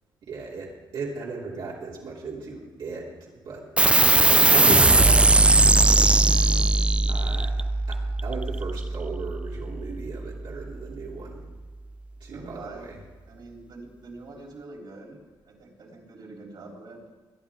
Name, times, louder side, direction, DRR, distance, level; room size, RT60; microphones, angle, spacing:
voice 1, 0.2-3.7 4.3-5.6 6.3-6.5 7.1-11.4 12.2-13.0, right 4 dB, 75° right, -5 dB, 3.1 m, -36 dB
sound 1, 3.8-10.7, right 2 dB, 15° right, 0.3 m, -20 dB
voice 2, 12.3-12.9 13.3-15.2 15.5-17.0, right 3 dB, 60° right, -1 dB, 3.7 m, -44 dB
23.5 x 10.5 x 3.6 m, 1.4 s
cardioid pair, 125°, 8 cm